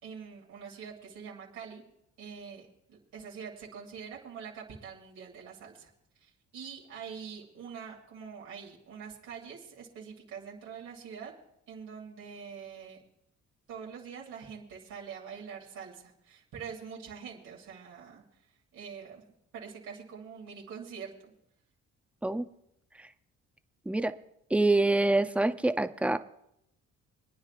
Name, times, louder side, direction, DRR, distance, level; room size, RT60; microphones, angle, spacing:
voice 1, 0.0-1.8 2.2-5.9 6.2-11.3 11.7-13.0 13.7-18.2 18.7-19.3 19.5-21.3, right 6 dB, 90° right, -4 dB, 2.8 m, -44 dB
voice 2, 24.5-26.2, right 2 dB, 5° right, 9 dB, 0.6 m, -25 dB
26.0 x 9.6 x 2.5 m, 0.78 s
cardioid pair, 90°, 30 cm